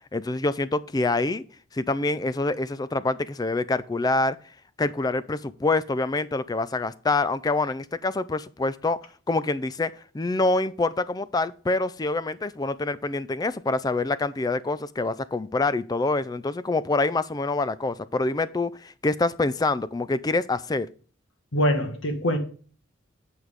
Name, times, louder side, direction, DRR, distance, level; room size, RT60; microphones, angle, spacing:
voice 1, 0.1-1.4 1.7-4.4 4.8-9.0 9.3-20.9, left 2 dB, 20° left, 0.3 m, -26 dB
voice 2, 21.5-22.4, equal, 70° left, 1.4 m, -23 dB
8.7 x 4.7 x 5.0 m
head